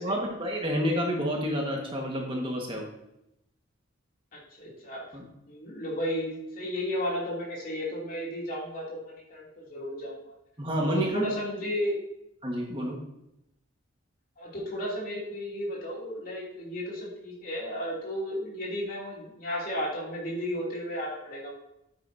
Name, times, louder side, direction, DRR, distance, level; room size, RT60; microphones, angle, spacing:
voice 1, 0.0-2.9 5.1-5.2 10.6-11.3 12.4-13.0, equal, 25° right, 0 dB, 1.5 m, -29 dB
voice 2, 4.3-5.0 5.5-10.3 10.8-12.0 14.4-21.6, equal, 45° left, -4 dB, 2.8 m, -33 dB
8.9 x 8.4 x 2.7 m, 0.83 s
head